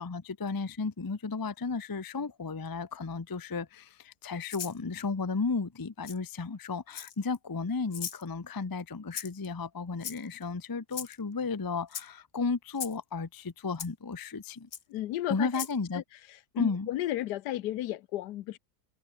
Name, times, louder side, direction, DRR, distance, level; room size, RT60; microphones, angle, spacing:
voice 1, 0.0-14.7 15.3-16.0 16.6-16.9, left 4 dB, 30° left, 0.4 m, -34 dB
Rattle (instrument), 4.5-4.8 6.0-6.2 6.9-7.4 7.9-8.2 9.1-9.5 10.0-10.4 10.9-11.2 11.9-12.1 12.8-13.0 13.8-13.9 14.7-14.8 15.5-15.8, left 8 dB, 55° left, 1.5 m, -38 dB
voice 2, 14.9-15.5 15.9-16.0 16.5-18.6, left 14 dB, 80° left, 1.3 m, -33 dB
omnidirectional pair, 1.8 m